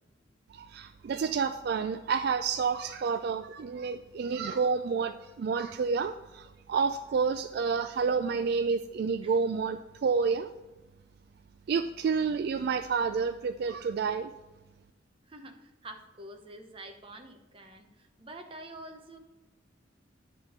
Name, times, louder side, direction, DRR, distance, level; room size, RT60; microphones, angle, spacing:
voice 1, 0.5-10.5 11.7-14.3, right 5 dB, 60° right, 9 dB, 0.3 m, -29 dB
voice 2, 15.3-19.2, right 1 dB, 30° right, 5 dB, 0.9 m, -47 dB
10.5 x 3.7 x 6.6 m, 1.1 s
head